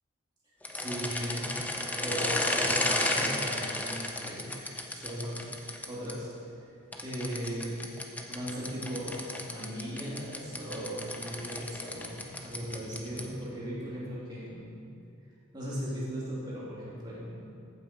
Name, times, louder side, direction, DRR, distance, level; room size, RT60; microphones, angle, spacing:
sound 1, 0.6-6.1 6.9-13.4, left 1 dB, 5° left, 0.6 m, -33 dB
voice 1, 0.7-1.5 2.0-5.5 5.9-6.3 7.0-7.9 8.3-14.8 15.5-17.5, equal, 20° right, -8 dB, 2.9 m, -38 dB
14.5 x 8.5 x 4.5 m, 2.5 s
head